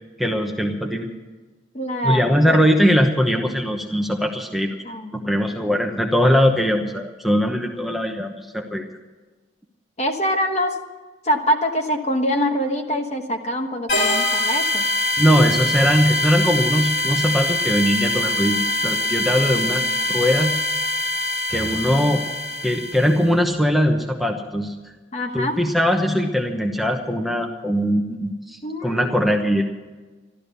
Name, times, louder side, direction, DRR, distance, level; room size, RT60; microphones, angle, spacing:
voice 1, 0.2-1.1 2.0-4.8 5.1-8.8 15.2-19.8 20.1-20.6 21.5-22.2 22.6-24.7 25.3-29.6, equal, ahead, 2 dB, 1.0 m, -20 dB
voice 2, 1.7-2.6 4.8-5.4 10.0-10.7 11.2-14.9 25.1-25.6 28.6-29.3, equal, 35° left, 4 dB, 1.3 m, -24 dB
sound 1, 13.9-23.3, left 1 dB, 60° left, 3.3 m, -23 dB
13.5 x 12.5 x 6.8 m, 1.3 s
head